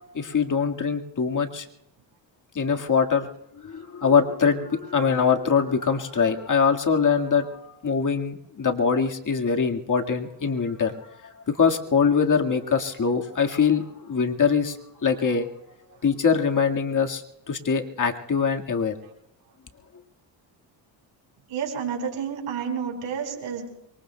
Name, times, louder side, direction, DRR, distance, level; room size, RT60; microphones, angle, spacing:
voice 1, 0.0-1.7 2.6-3.3 3.6-11.0 11.2-14.8 15.0-15.5 16.0-18.9, left 6 dB, 40° left, 3 dB, 1.8 m, -23 dB
voice 2, 21.5-23.7, right 7 dB, 75° right, 2 dB, 4.7 m, -30 dB
26.5 x 23.5 x 2.3 m, 0.82 s
cardioid pair, 75°, 48 cm